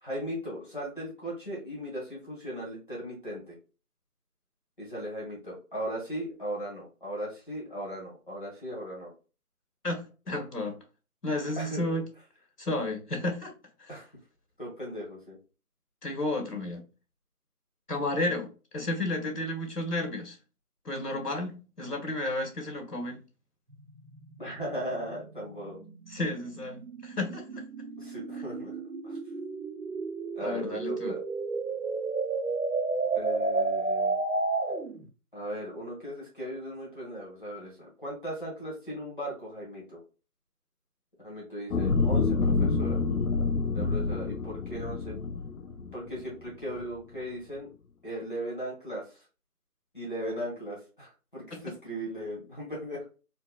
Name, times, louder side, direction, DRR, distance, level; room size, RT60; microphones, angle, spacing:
voice 1, 0.0-3.6 4.8-9.1 11.6-11.8 13.9-14.1 14.6-15.4 24.4-25.8 28.0-28.7 29.0-29.2 30.3-31.2 33.1-34.1 35.3-40.0 41.2-43.0 43.7-45.2 45.9-47.7 48.0-49.2 49.9-53.0, equal, 35° left, 1.5 m, -37 dB
voice 2, 9.8-10.8 11.2-12.0 12.6-13.5 13.8-13.9 16.0-16.8 17.9-20.4 20.8-23.2 26.1-27.6 30.4-31.2 51.5-51.6, left 2 dB, 85° left, 1.5 m, -32 dB
sound 1, 23.7-35.0, right 3 dB, 70° right, 0.9 m, -32 dB
sound 2, 41.7-46.2 46.7-46.8, left 4 dB, 65° left, 0.6 m, -27 dB
4.2 x 2.3 x 2.3 m
figure-of-eight pair, 175°, 46 cm